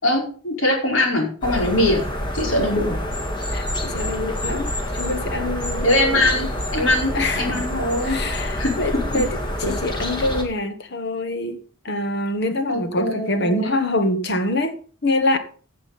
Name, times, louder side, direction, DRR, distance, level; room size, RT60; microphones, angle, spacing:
voice 1, 0.0-2.0 2.3-3.0 5.8-8.2 8.6-9.0 9.6-9.7 12.7-13.7, left 1 dB, 80° left, 5.0 m, -22 dB
sound 1, 1.4-10.4, equal, 20° left, 1.8 m, -27 dB
voice 2, 3.5-6.2 7.1-7.7 8.0-9.4 9.7-11.6 11.8-14.7 15.0-15.4, left 1 dB, 55° left, 1.3 m, -25 dB
15.0 x 7.6 x 4.2 m
head